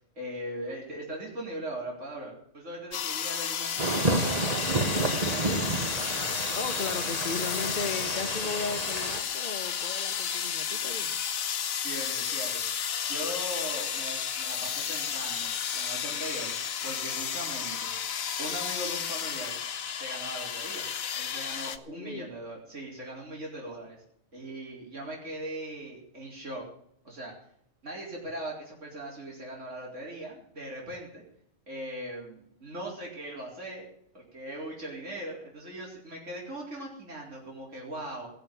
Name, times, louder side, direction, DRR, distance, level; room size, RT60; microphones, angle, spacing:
voice 1, 0.2-5.6 11.8-12.6 13.1-16.6 16.8-17.9 18.4-19.5 19.9-20.9 21.2-24.0 24.3-26.6 27.0-27.3 27.8-31.2 31.7-33.9 34.1-38.3, right 1 dB, 60° right, -3 dB, 4.5 m, -40 dB
sound 1, 2.9-21.8, left 8 dB, 85° left, 1.4 m, -32 dB
sound 2, 3.8-9.2, right 2 dB, 30° right, 1.2 m, -30 dB
voice 2, 6.5-11.2 21.8-22.3, left 5 dB, 40° left, 7 dB, 1.4 m, -36 dB
17.5 x 6.8 x 9.2 m, 0.69 s
omnidirectional pair, 1.4 m